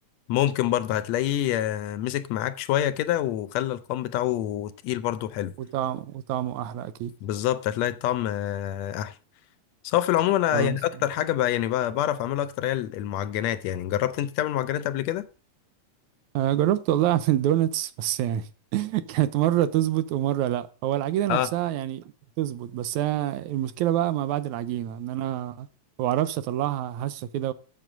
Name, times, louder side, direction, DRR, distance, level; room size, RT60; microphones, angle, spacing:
voice 1, 0.3-5.5 7.2-9.1 9.8-15.2 21.3-21.5, left 12 dB, 75° left, 1.7 m, -26 dB
voice 2, 5.6-7.1 10.5-10.8 16.3-22.0 22.4-25.7 26.0-27.5, right 12 dB, 90° right, 2.1 m, -26 dB
7.8 x 7.5 x 5.1 m
omnidirectional pair, 3.3 m